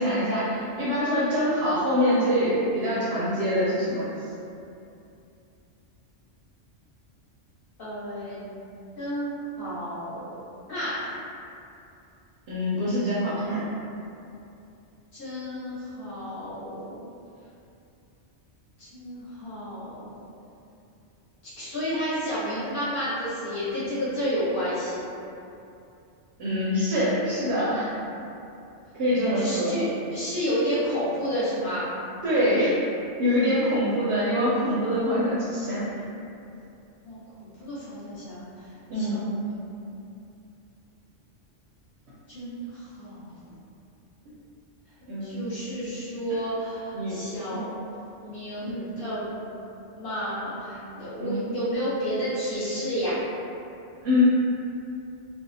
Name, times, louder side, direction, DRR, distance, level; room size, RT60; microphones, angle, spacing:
voice 1, 0.0-4.1 4.4-4.5 12.5-13.6 26.4-27.9 28.9-29.8 32.2-32.7 33.2-35.8 38.9-39.2 45.1-45.5 46.9-47.2 48.6-48.8 51.2-51.5 54.0-54.2, equal, 65° right, -9 dB, 0.8 m, -24 dB
voice 2, 7.8-8.5 9.0-9.3 9.6-10.3 10.7-11.0 15.1-17.1 18.8-20.1 21.6-25.0 29.3-31.9 37.0-38.7 38.9-39.5 42.3-43.3 45.2-47.7 48.2-49.4 50.0-53.1, equal, 50° left, -11 dB, 1.0 m, -31 dB
2.6 x 2.0 x 2.6 m, 2.7 s
omnidirectional pair, 1.3 m